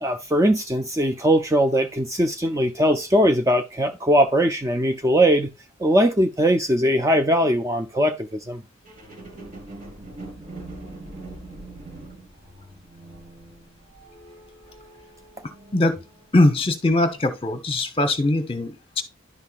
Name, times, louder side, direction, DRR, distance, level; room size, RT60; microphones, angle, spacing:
voice 1, 0.0-5.5 5.8-8.6, equal, 15° right, 0.4 m, -20 dB
sound 1, 8.8-16.3 16.9-17.0, right 2 dB, 40° right, 1.8 m, -42 dB
voice 2, 15.7-16.0 16.3-19.0, left 2 dB, 25° left, 1.0 m, -21 dB
10.5 x 5.6 x 2.4 m
head